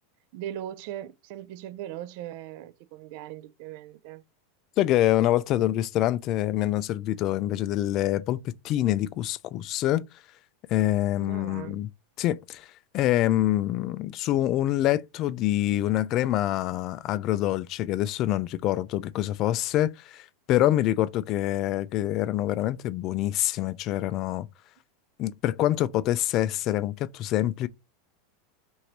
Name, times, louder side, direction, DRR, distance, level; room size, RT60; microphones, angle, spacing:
voice 1, 0.3-4.2 11.2-11.8, right 12 dB, 60° right, 0.3 m, -39 dB
voice 2, 4.8-10.0 10.7-11.9 12.2-12.7 12.9-24.5 25.2-27.7, left 14 dB, 50° left, 0.3 m, -26 dB
3.2 x 2.6 x 2.8 m
hypercardioid pair, 105°, 0 cm